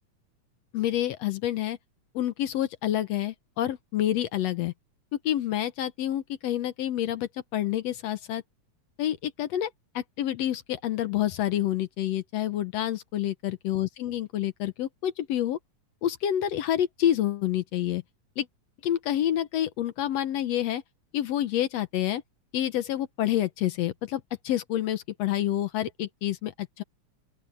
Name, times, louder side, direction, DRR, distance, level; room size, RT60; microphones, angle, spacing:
voice 1, 0.7-1.8 2.2-4.7 5.3-8.4 9.0-9.7 10.0-15.6 16.0-18.0 18.4-18.5 18.8-20.8 21.1-22.2 22.5-26.8, left 12 dB, 70° left, 1.9 m, -28 dB
open air
omnidirectional pair, 3.3 m